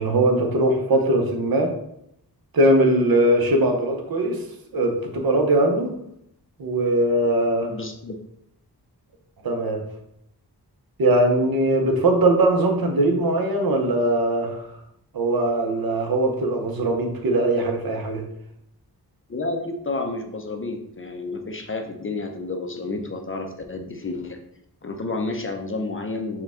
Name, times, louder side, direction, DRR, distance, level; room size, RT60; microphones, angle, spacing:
voice 1, 0.0-1.7 2.5-4.4 4.7-5.9 6.6-7.7 9.4-9.8 11.0-14.7 15.1-18.2, right 1 dB, 60° right, 3 dB, 0.8 m, -20 dB
voice 2, 7.6-8.2 19.3-24.4 24.8-26.4, left 3 dB, 30° left, 4 dB, 0.5 m, -30 dB
4.5 x 2.3 x 3.6 m, 0.75 s
wide cardioid pair, 75°, 41 cm